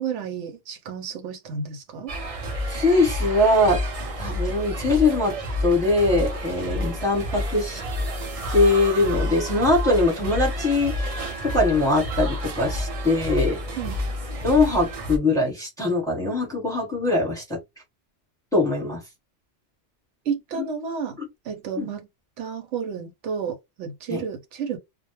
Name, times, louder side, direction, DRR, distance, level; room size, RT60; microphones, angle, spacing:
voice 1, 0.0-2.1 13.8-14.0 20.3-21.2 21.4-22.1 22.4-24.8, right 6 dB, 90° right, 0.9 m, -31 dB
sound 1, 2.1-15.2, left 1 dB, 45° right, 0.5 m, -29 dB
voice 2, 2.7-3.8 4.2-5.3 5.6-7.8 8.5-13.6 14.4-17.6 18.5-19.0 20.6-20.7 21.2-21.3 21.8-21.9 24.1-24.2, left 2 dB, 5° left, 1.0 m, -22 dB
2.2 x 2.0 x 2.9 m
omnidirectional pair, 1.2 m